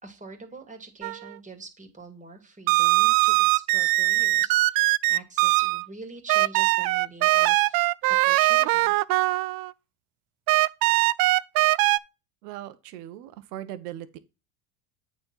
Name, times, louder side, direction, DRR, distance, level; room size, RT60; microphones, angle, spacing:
voice 1, 0.0-8.9, right 3 dB, 15° right, 2.8 m, -45 dB
sound 1, 1.0-1.3 2.7-5.9 6.3-9.7 10.5-12.0, right 19 dB, 50° right, 0.5 m, -21 dB
voice 2, 12.4-14.2, right 13 dB, 80° right, 1.3 m, -39 dB
8.8 x 4.3 x 5.7 m
supercardioid pair, 95°, 46 cm